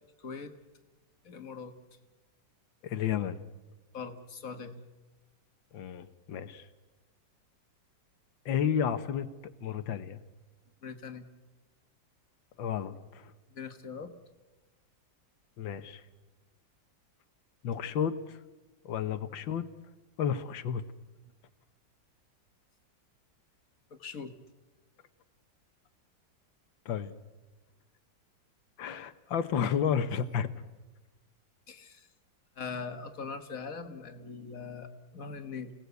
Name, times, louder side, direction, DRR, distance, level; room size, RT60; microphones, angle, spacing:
voice 1, 0.2-0.5 1.2-1.7 3.9-4.8 10.8-11.3 13.5-14.1 23.9-24.3 31.7-32.1 32.6-35.7, left 5 dB, 50° left, 8 dB, 1.9 m, -41 dB
voice 2, 2.8-3.4 5.7-6.7 8.5-9.3 9.6-10.2 12.6-13.3 15.6-16.0 17.6-18.4 18.9-19.7 20.2-20.8 26.9-27.1 28.8-30.5, left 8 dB, 90° left, 12 dB, 1.9 m, -31 dB
29.0 x 18.5 x 8.2 m, 1.2 s
omnidirectional pair, 2.0 m